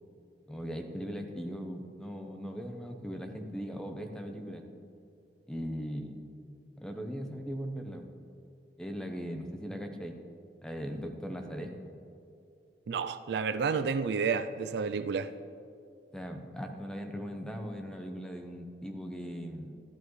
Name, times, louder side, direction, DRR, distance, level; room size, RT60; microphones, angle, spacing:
voice 1, 0.5-4.6 5.5-6.2 6.8-8.1 8.8-10.2 10.6-11.9 16.1-19.7, equal, 5° left, 4 dB, 0.7 m, -39 dB
voice 2, 12.9-15.3, right 5 dB, 60° right, 11 dB, 0.4 m, -30 dB
13.5 x 10.5 x 3.1 m, 2.4 s
head